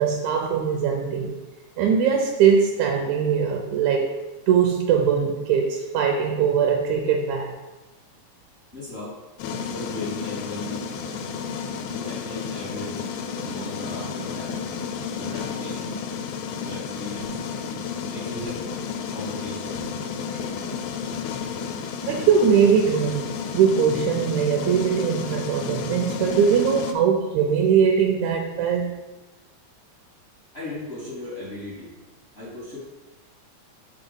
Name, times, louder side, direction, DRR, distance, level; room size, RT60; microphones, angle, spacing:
voice 1, 0.0-1.4 1.8-4.1 4.5-7.5 22.1-23.2 23.5-29.0, right 7 dB, 85° right, 2 dB, 2.0 m, -21 dB
voice 2, 8.7-9.2 9.4-10.9 11.9-13.1 13.4-14.6 15.1-16.0 16.6-17.4 17.7-17.9 18.1-18.7 19.1-19.8 20.2-20.7 30.5-31.9 32.3-32.8, left 2 dB, 55° left, -7 dB, 0.6 m, -37 dB
sound 1, 9.4-26.9, left 6 dB, 85° left, 1.9 m, -32 dB
sound 2, 17.2-17.5 18.3-18.8 19.7-20.0 21.0-21.3 22.1-22.2 22.5-22.7 23.0-23.2, right 2 dB, 60° right, 1.2 m, -45 dB
4.5 x 3.9 x 5.3 m, 1.1 s
omnidirectional pair, 3.3 m